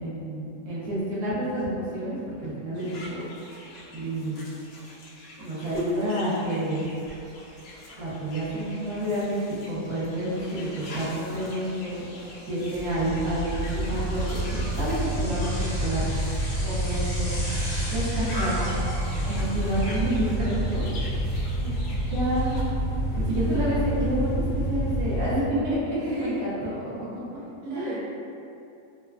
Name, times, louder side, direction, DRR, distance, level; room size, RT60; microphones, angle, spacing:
voice 1, 0.0-3.2 3.9-4.4 5.4-6.8 8.0-12.1 12.5-16.1 16.6-17.3 17.9-18.8 19.2-21.1 22.1-22.6 23.1-27.1 27.7-28.0, right 1 dB, 75° right, -10 dB, 1.3 m, -29 dB
sound 1, 2.7-22.6, left 1 dB, 75° left, 0.5 m, -45 dB
Bicycle, 7.1-7.2 7.5-21.3, equal, 15° left, 0.9 m, -40 dB
sound 2, 12.8-25.3, right 1 dB, 35° right, 1.2 m, -28 dB
voice 2, 21.6-22.0 26.0-26.4 27.6-28.0, right 2 dB, 55° right, -10 dB, 1.0 m, -37 dB
3.5 x 2.1 x 2.2 m, 2.6 s
omnidirectional pair, 1.7 m